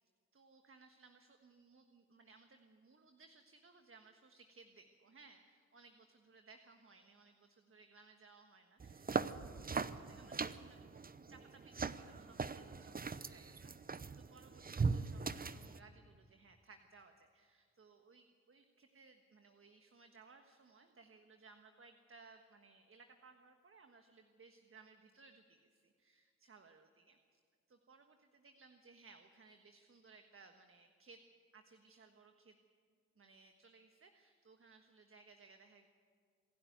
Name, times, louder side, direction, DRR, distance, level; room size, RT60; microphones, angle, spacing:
voice 1, 0.3-11.0 11.3-27.4 27.7-31.2 31.5-32.6 33.2-35.9, right 4 dB, 50° right, 6 dB, 1.4 m, -63 dB
sound 1, 8.8-15.8, right 4 dB, 30° right, 0.8 m, -40 dB
26.0 x 11.5 x 9.4 m, 2.1 s
cardioid pair, 55°, 29 cm